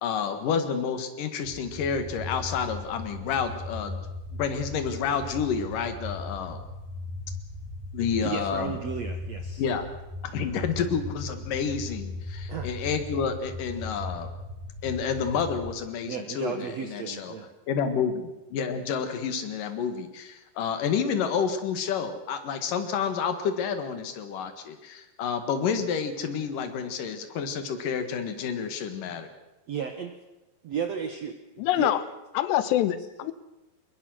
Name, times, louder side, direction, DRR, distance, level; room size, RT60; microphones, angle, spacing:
voice 1, 0.0-4.0 4.3-6.6 7.9-8.7 9.6-9.8 10.2-14.3 14.8-17.3 17.7-29.3, left 6 dB, 60° left, 8 dB, 3.0 m, -29 dB
sound 1, 1.4-15.7, left 2 dB, ahead, 5.8 m, -38 dB
voice 2, 8.2-9.6 12.5-12.7 16.1-17.5 29.7-30.1 30.6-31.4 31.8-31.9, right 7 dB, 80° right, 6 dB, 1.5 m, -33 dB
voice 3, 31.6-32.0 32.3-33.3, left 13 dB, 80° left, 14 dB, 3.1 m, -25 dB
22.0 x 21.5 x 6.3 m, 0.97 s
omnidirectional pair, 4.9 m